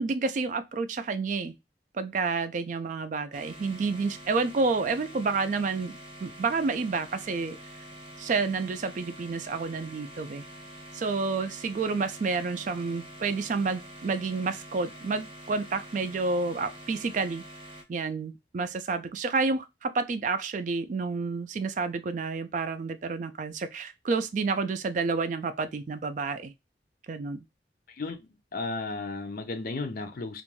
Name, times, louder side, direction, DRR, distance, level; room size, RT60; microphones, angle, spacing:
voice 1, 0.0-1.6 1.9-5.9 6.2-7.6 8.2-10.4 10.9-17.4 17.9-26.5 27.1-27.4, right 4 dB, 45° right, 0.3 m, -29 dB
sound 1, 3.3-17.8, equal, 30° right, 0.8 m, -46 dB
voice 2, 27.9-30.4, left 3 dB, 55° left, 0.5 m, -34 dB
2.5 x 2.2 x 3.0 m
head